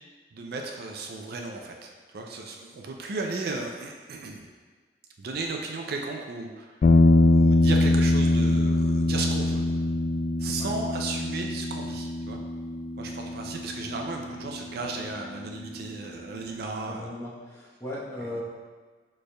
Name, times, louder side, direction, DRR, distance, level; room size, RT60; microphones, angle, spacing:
voice 1, 0.3-4.4 5.2-6.8 7.2-9.6 10.4-12.4 13.0-17.2 18.2-18.4, right 3 dB, 60° right, 2 dB, 0.4 m, -35 dB
sound 1, 6.8-15.2, left 2 dB, 45° left, 0.3 m, -23 dB
voice 2, 16.9-18.4, left 1 dB, 15° left, -7 dB, 1.0 m, -37 dB
6.3 x 3.3 x 2.2 m, 1.5 s
head